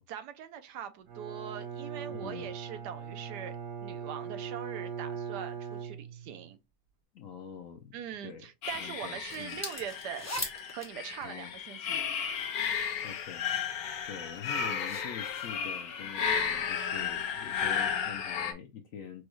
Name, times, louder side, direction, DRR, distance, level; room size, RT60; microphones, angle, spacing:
voice 1, 0.1-3.6 3.8-6.6 7.9-10.3 10.7-12.0, right 9 dB, 75° right, 1.2 m, -42 dB
Bowed string instrument, 1.1-6.5, right 7 dB, 55° right, 1.2 m, -40 dB
voice 2, 2.1-2.5 7.1-7.9 8.2-8.5 8.7-9.6 11.2-11.5 13.0-19.2, left 7 dB, 60° left, 0.9 m, -45 dB
sound 1, 8.6-18.5, left 7 dB, 90° left, 1.4 m, -34 dB
sound 2, 9.2-12.3 13.0-16.5, left 1 dB, 25° left, 0.3 m, -43 dB
6.2 x 2.3 x 3.0 m
omnidirectional pair, 1.9 m